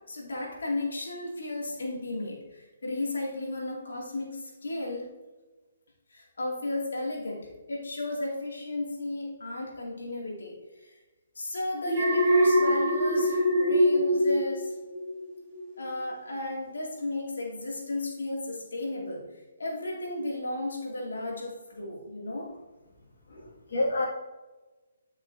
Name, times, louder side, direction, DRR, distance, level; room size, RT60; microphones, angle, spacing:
voice 1, 0.0-5.1 6.1-10.9 11.4-14.7 15.8-19.2 19.6-22.5, left 2 dB, 80° left, -2 dB, 2.4 m, -34 dB
Alarm, 11.9-15.2 15.6-15.9, equal, 20° right, 2.0 m, -23 dB
voice 2, 23.3-24.1, left 2 dB, 60° left, -4 dB, 2.1 m, -29 dB
10.5 x 6.0 x 2.7 m, 1.2 s
hypercardioid pair, 145°, 0 cm